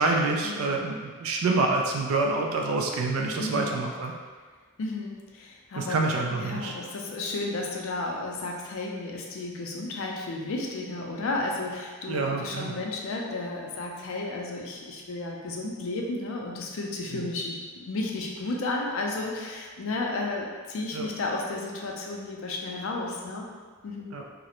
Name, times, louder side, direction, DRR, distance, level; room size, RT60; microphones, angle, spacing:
voice 1, 0.0-4.1 5.8-6.7 12.1-12.7 17.1-17.3 20.9-21.1 24.1-24.2, right 3 dB, 80° right, 1 dB, 0.3 m, -27 dB
voice 2, 3.4-3.8 4.8-6.0 6.4-23.4 23.8-24.1, left 2 dB, 75° left, 0 dB, 0.4 m, -33 dB
2.4 x 2.0 x 2.8 m, 1.5 s
head